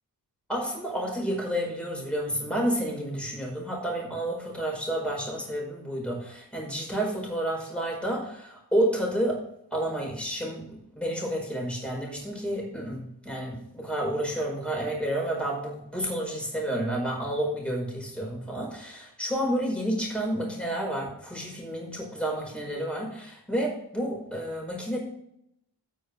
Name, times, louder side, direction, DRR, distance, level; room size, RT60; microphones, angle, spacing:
voice 1, 0.5-9.4 9.7-25.0, right 1 dB, ahead, -3 dB, 5.0 m, -30 dB
18.5 x 6.4 x 3.4 m, 0.77 s
wide cardioid pair, 105°, 43 cm